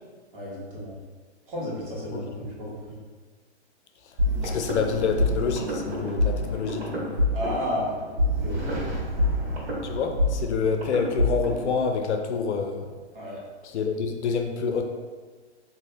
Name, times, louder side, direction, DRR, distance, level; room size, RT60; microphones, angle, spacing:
voice 1, 0.3-1.0 1.5-2.8 7.3-8.0 8.4-9.0 13.1-13.4, left 1 dB, 50° right, -6 dB, 1.2 m, -32 dB
sound 1, 4.2-11.7, left 1 dB, 70° right, 1.3 m, -27 dB
voice 2, 4.4-7.3 9.8-12.9 13.6-14.8, left 5 dB, 75° left, 4 dB, 0.5 m, -27 dB
2.7 x 2.6 x 3.3 m, 1.4 s
hypercardioid pair, 160°, 34 cm